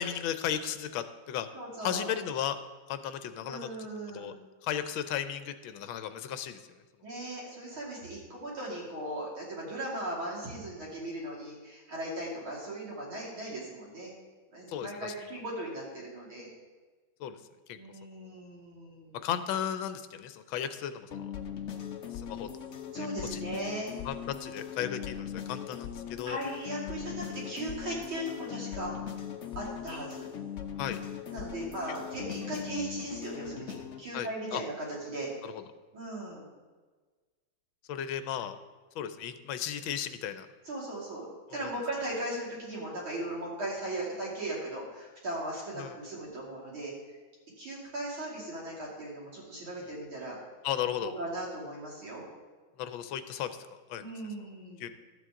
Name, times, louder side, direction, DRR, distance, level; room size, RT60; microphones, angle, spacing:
voice 1, 0.0-1.5 1.8-2.6 2.9-3.7 4.1-4.3 4.6-6.8 14.7-15.1 17.2-17.4 17.7-17.8 19.2-21.3 22.1-22.5 23.0-23.4 24.0-26.4 30.8-31.0 34.1-34.6 35.4-35.5 37.9-38.6 38.9-40.5 41.6-41.7 45.8-46.0 50.6-51.1 52.8-53.6 53.9-54.0 54.8-54.9, left 9 dB, 80° left, 10 dB, 1.4 m, -35 dB
voice 2, 1.5-2.1 3.4-4.4 7.0-14.1 14.5-16.5 17.7-19.2 22.9-23.9 26.2-28.9 29.6-30.3 31.3-35.3 35.9-36.5 40.6-46.9 47.6-50.4 51.0-52.3 54.0-54.9, right 1 dB, 85° right, -5 dB, 3.6 m, -38 dB
sound 1, 21.1-34.0, left 9 dB, 60° left, 0.7 m, -40 dB
13.0 x 8.3 x 3.7 m, 1.4 s
omnidirectional pair, 2.2 m